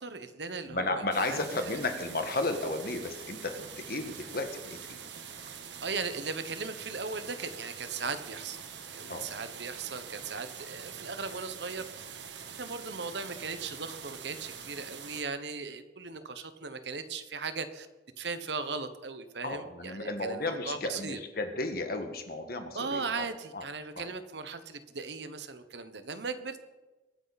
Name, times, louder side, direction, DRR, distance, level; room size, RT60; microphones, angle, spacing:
voice 1, 0.0-1.8 5.8-8.6 8.9-12.0 12.6-17.9 18.2-21.2 22.7-26.6, right 4 dB, 75° right, 10 dB, 1.2 m, -38 dB
voice 2, 0.7-5.0 9.1-9.3 19.4-23.3 23.5-23.6 23.9-24.1, left 2 dB, 55° left, 6 dB, 1.7 m, -33 dB
sound 1, 1.1-15.2, right 7 dB, 90° right, 1.4 m, -45 dB
23.0 x 9.5 x 4.2 m, 1.1 s
head